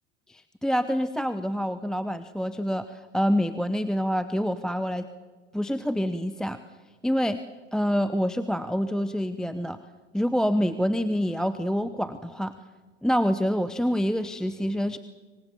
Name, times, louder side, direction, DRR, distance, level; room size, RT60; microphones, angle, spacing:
voice 1, 0.3-5.1 5.5-6.6 7.0-7.4 7.7-9.8 10.1-12.5 13.0-15.0, equal, ahead, 12 dB, 0.9 m, -26 dB
26.0 x 24.0 x 7.1 m, 1.4 s
hypercardioid pair, 80°, 35 cm